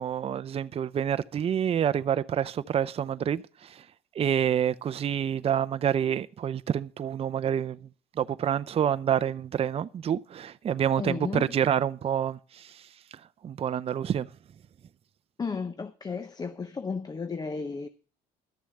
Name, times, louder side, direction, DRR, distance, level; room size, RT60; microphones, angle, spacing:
voice 1, 0.0-3.8 4.1-7.9 8.2-12.9 13.4-14.3, right 9 dB, 35° right, 0.5 m, -28 dB
voice 2, 11.0-11.5 15.4-17.9, left 5 dB, 25° left, 0.7 m, -33 dB
12.5 x 7.0 x 7.7 m
cardioid pair, 110°, 17 cm